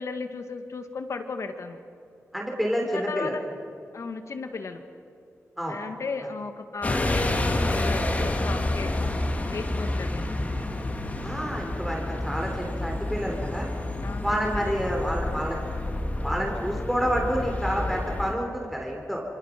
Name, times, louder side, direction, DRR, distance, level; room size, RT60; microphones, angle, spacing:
voice 1, 0.0-1.8 2.8-3.4 3.9-4.8 5.7-9.1 9.5-10.4 14.0-14.7, left 4 dB, 65° left, 7 dB, 1.8 m, -35 dB
voice 2, 2.3-3.3 5.6-5.8 11.2-13.7 14.2-15.6 16.2-19.2, equal, ahead, 0 dB, 3.3 m, -29 dB
sound 1, 6.8-18.3, left 1 dB, 25° left, 1.9 m, -29 dB
27.5 x 26.0 x 6.0 m, 2.6 s
wide cardioid pair, 130°, 6 cm